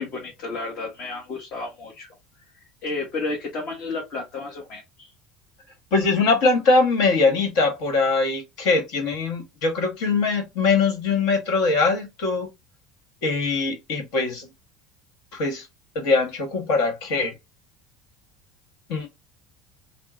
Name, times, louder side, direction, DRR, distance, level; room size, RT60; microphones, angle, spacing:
voice 1, 0.0-2.1 2.8-5.1, left 3 dB, 50° left, 1.2 m, -32 dB
voice 2, 5.9-12.5 13.2-14.5 15.3-15.7 15.9-17.3 18.9-19.1, left 3 dB, 70° left, 1.5 m, -22 dB
2.8 x 2.1 x 3.7 m
cardioid pair, 135°, 0 cm